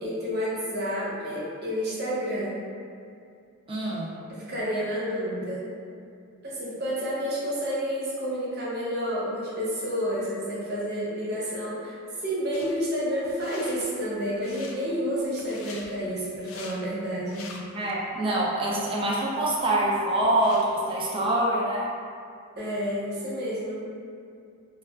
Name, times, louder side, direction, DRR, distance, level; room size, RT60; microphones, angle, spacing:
voice 1, 0.0-2.5 4.3-5.6 6.4-17.5 22.6-23.8, equal, 50° right, -7 dB, 0.7 m, -30 dB
voice 2, 3.7-4.1 17.7-21.9, right 1 dB, 25° right, -5 dB, 0.3 m, -25 dB
sound 1, 12.5-12.8 13.2-13.8 14.3-14.8 15.4-15.9 16.3-16.8 17.2-17.9 18.4-18.5 19.2-19.3 19.6-20.7, left 4 dB, 65° left, 0.3 m, -44 dB
2.3 x 2.1 x 3.4 m, 2.4 s
head